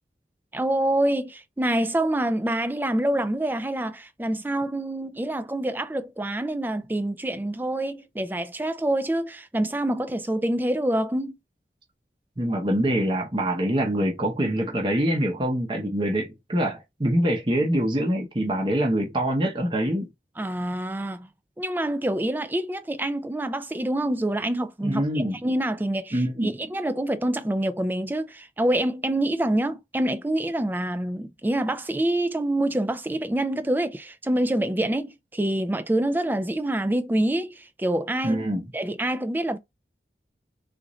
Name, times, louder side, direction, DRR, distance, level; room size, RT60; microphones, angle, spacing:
voice 1, 0.5-11.3 20.4-21.3 21.6-38.5 38.7-39.6, right 1 dB, 10° right, 0.3 m, -26 dB
voice 2, 12.4-20.1 24.8-25.4 26.1-26.5 38.2-38.7, right 1 dB, 25° right, 0.7 m, -24 dB
3.8 x 2.5 x 3.0 m
head